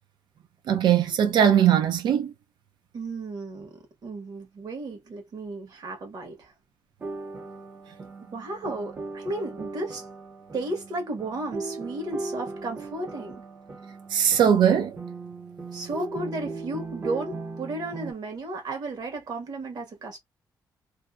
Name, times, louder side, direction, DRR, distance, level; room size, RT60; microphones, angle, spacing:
voice 1, 0.7-2.3 14.1-15.0, right 9 dB, 80° right, 0.5 m, -20 dB
voice 2, 2.9-6.5 8.3-10.0 10.5-13.4 15.7-20.2, right 2 dB, 60° right, 1.2 m, -34 dB
sound 1, 7.0-18.1, right 3 dB, 30° right, 0.6 m, -38 dB
2.7 x 2.1 x 2.3 m
cardioid pair, 135°, 8 cm